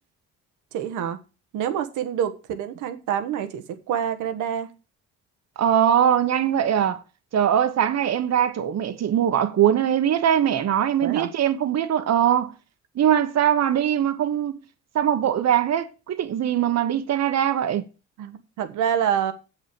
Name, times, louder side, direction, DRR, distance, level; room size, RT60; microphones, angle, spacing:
voice 1, 0.7-1.2 1.5-4.7 11.0-11.3 18.2-19.3, right 9 dB, 90° right, 1.3 m, -27 dB
voice 2, 5.6-7.0 7.3-12.5 12.9-14.6 14.9-17.8, right 9 dB, 60° right, 1.1 m, -21 dB
7.6 x 6.1 x 6.9 m
cardioid pair, 90°, 30 cm